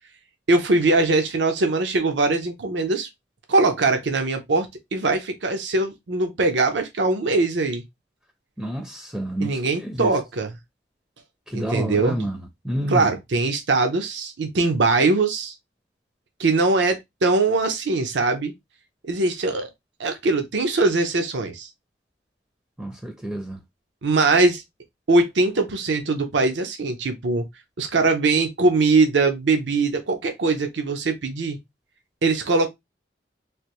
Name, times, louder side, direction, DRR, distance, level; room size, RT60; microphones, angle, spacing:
voice 1, 0.5-3.1 3.5-7.8 9.4-10.6 11.5-12.2 12.9-15.5 16.4-18.5 19.1-19.7 20.0-21.7 24.0-24.6 25.1-27.4 27.8-31.6 32.2-32.7, right 3 dB, 80° right, 0.6 m, -21 dB
voice 2, 8.6-9.6 10.0-10.1 11.5-13.0 22.8-23.6, right 1 dB, 5° right, 0.4 m, -28 dB
3.3 x 2.5 x 2.9 m
head